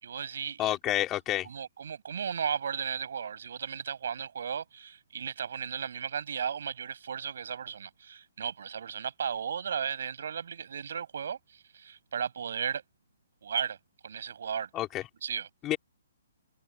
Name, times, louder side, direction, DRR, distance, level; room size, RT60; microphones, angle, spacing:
voice 1, 0.0-0.7 1.4-12.8 13.4-13.8 14.0-14.7 15.2-15.5, right 7 dB, 65° right, 6.7 m, -35 dB
voice 2, 0.6-1.5 14.7-15.0 15.6-15.8, left 14 dB, 20° left, 3.4 m, -29 dB
hypercardioid pair, 160°, 0 cm